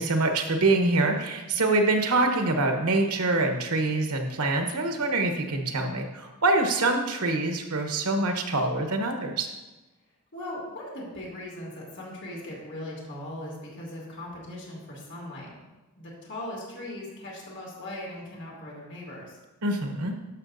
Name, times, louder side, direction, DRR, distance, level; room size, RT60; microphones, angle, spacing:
voice 1, 0.0-9.5 19.6-20.1, right 2 dB, 90° right, 4 dB, 1.0 m, -25 dB
voice 2, 10.3-15.5 16.0-19.3, left 1 dB, 55° left, -4 dB, 2.5 m, -39 dB
11.5 x 6.5 x 2.6 m, 1.1 s
head